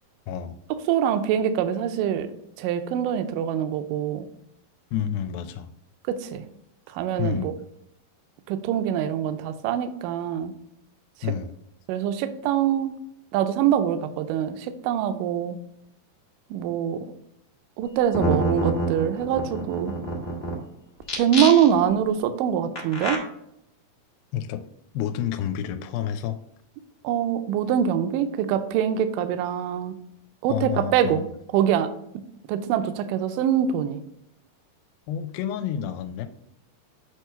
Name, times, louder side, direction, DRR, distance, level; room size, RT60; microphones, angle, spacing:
voice 1, 0.3-0.6 4.9-5.7 7.2-7.5 11.2-11.5 24.3-24.7 24.9-26.4 30.5-31.3 35.1-36.3, left 9 dB, 85° left, 9 dB, 2.4 m, -29 dB
voice 2, 0.9-2.3 2.6-4.3 6.1-6.4 6.9-7.5 8.5-10.6 11.9-13.0 13.3-15.6 16.5-17.1 17.8-19.9 21.2-23.2 27.0-29.9 30.4-31.2 31.5-31.9 32.5-34.0, right 9 dB, 80° right, 9 dB, 2.0 m, -24 dB
sound 1, 17.8-17.9 18.1-20.5 21.0-21.9 22.7-23.2, right 1 dB, 45° left, 0.7 m, -26 dB
8.3 x 3.1 x 5.6 m, 0.74 s
omnidirectional pair, 4.2 m